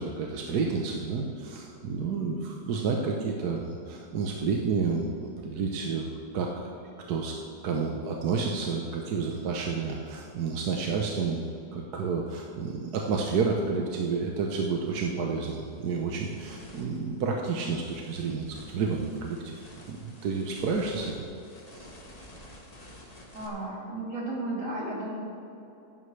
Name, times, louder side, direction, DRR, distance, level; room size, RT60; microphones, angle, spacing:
voice 1, 0.0-6.1 6.3-6.6 7.1-7.3 7.6-19.5 19.9-21.3 21.7-21.9, right 5 dB, 75° right, 1 dB, 1.4 m, -30 dB
sound 1, 15.3-23.5, left 1 dB, 25° left, 1.4 m, -51 dB
voice 2, 23.3-25.2, right 2 dB, 50° right, -6 dB, 3.6 m, -34 dB
15.0 x 11.0 x 3.3 m, 2.8 s
omnidirectional pair, 1.7 m